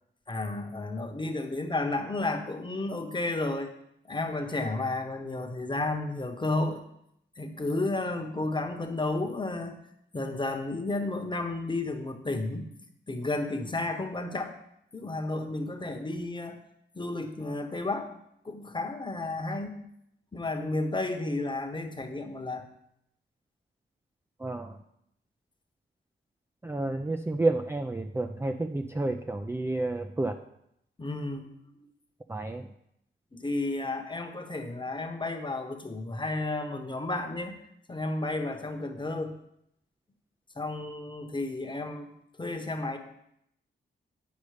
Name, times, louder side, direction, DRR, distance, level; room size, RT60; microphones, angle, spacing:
voice 1, 0.3-3.7 4.0-6.8 7.4-9.8 10.1-12.7 13.1-14.5 14.9-16.6 16.9-18.1 18.4-19.8 20.3-22.7 31.0-31.5 33.3-37.5 37.9-39.4 40.6-42.1 42.4-43.0, left 2 dB, 25° left, 6 dB, 1.0 m, -32 dB
voice 2, 24.4-24.8 26.6-30.4 32.3-32.7, right 2 dB, 10° right, 5 dB, 0.4 m, -30 dB
9.4 x 5.2 x 5.0 m, 0.76 s
cardioid pair, 85°, 20 cm